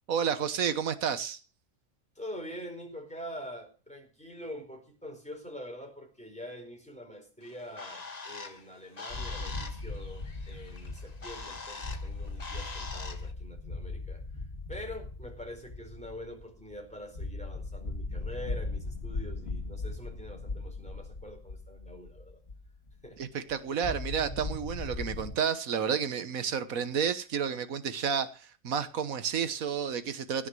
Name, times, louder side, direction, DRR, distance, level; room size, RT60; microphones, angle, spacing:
voice 1, 0.1-1.4 23.2-30.5, right 7 dB, 90° right, 1.6 m, -31 dB
voice 2, 2.1-22.4 23.0-23.2 23.6-23.8 29.4-29.5, equal, 5° left, 4.7 m, -45 dB
Bird, 7.4-13.3, left 4 dB, 30° left, 1.4 m, -44 dB
sound 1, 9.1-23.2 23.5-23.6 23.8-25.3, left 3 dB, 50° left, 2.8 m, -39 dB
17.0 x 6.4 x 7.7 m
omnidirectional pair, 1.4 m